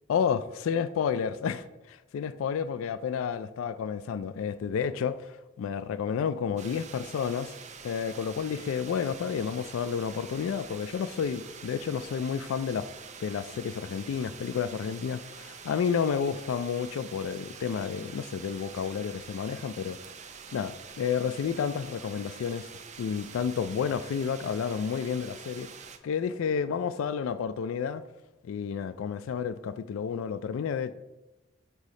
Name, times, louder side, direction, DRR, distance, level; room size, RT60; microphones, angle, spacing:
voice 1, 0.1-7.5 7.8-12.9 13.2-20.0 20.5-22.7 23.0-25.7 26.0-28.0 28.4-30.9, left 7 dB, 90° left, 0.3 m, -31 dB
sound 1, 6.6-26.0, right 6 dB, 35° right, 0.5 m, -46 dB
8.0 x 2.8 x 5.2 m
head